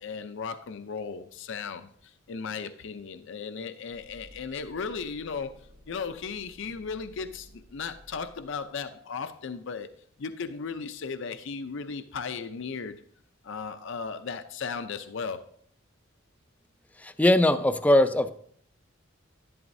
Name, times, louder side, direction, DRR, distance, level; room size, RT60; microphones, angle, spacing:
voice 1, 0.0-5.6 5.9-9.9 10.2-13.0 13.4-15.4, left 5 dB, 65° left, 0.5 m, -36 dB
sound 1, 3.9-8.8, equal, 85° right, 1.2 m, -54 dB
voice 2, 17.0-18.3, left 1 dB, 10° left, 0.4 m, -21 dB
11.5 x 11.0 x 2.7 m
head